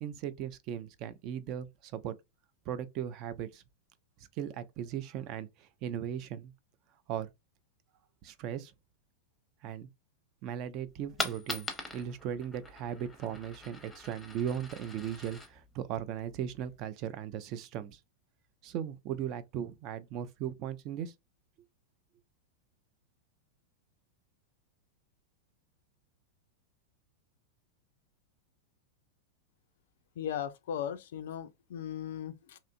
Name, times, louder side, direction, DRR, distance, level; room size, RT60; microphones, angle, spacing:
voice 1, 0.0-2.2 2.7-3.6 4.4-6.5 7.1-7.3 8.2-8.7 9.6-9.9 10.4-11.7 11.9-18.0 18.6-21.1, right 9 dB, 40° right, 0.4 m, -37 dB
Coin (dropping), 10.9-16.8, left 3 dB, 10° left, 0.7 m, -42 dB
voice 2, 30.2-32.6, left 9 dB, 60° left, 0.3 m, -37 dB
2.7 x 2.4 x 2.4 m
figure-of-eight pair, 90°, 0 cm